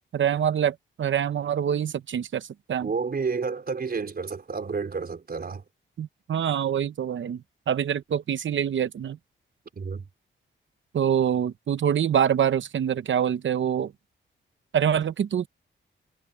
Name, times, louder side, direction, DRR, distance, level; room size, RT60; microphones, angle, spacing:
voice 1, 0.1-2.9 6.0-7.4 7.7-9.2 10.9-13.9 14.7-15.5, right 9 dB, 65° right, 0.8 m, -25 dB
voice 2, 2.8-5.6 9.7-10.1, right 5 dB, 50° right, 4.6 m, -30 dB
cardioid pair, 85°, 21 cm